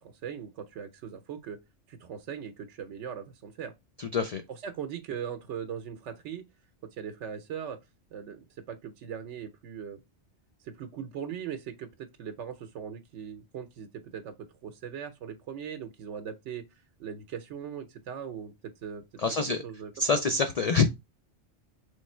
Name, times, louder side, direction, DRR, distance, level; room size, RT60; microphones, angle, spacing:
voice 1, 0.0-1.6 1.9-3.7 4.5-6.4 6.8-7.8 8.1-10.0 10.6-16.6 17.0-20.2, right 8 dB, 85° right, 0.9 m, -40 dB
voice 2, 4.0-4.4 19.2-19.6 20.0-20.8, left 4 dB, 60° left, 0.4 m, -25 dB
3.4 x 3.2 x 4.2 m
omnidirectional pair, 1.2 m